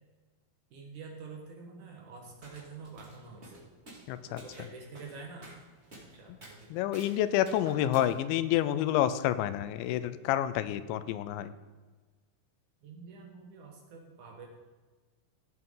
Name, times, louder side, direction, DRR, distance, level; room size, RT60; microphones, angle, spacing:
voice 1, 0.7-3.7 4.3-5.5 6.0-6.7 7.6-7.7 12.8-14.5, right 4 dB, 65° right, 0 dB, 2.0 m, -47 dB
sound 1, 2.3-8.2, right 1 dB, 20° right, 1.8 m, -53 dB
voice 2, 4.1-4.4 6.7-11.5, left 12 dB, 85° left, 13 dB, 2.8 m, -29 dB
17.0 x 8.0 x 3.8 m, 1.3 s
omnidirectional pair, 5.3 m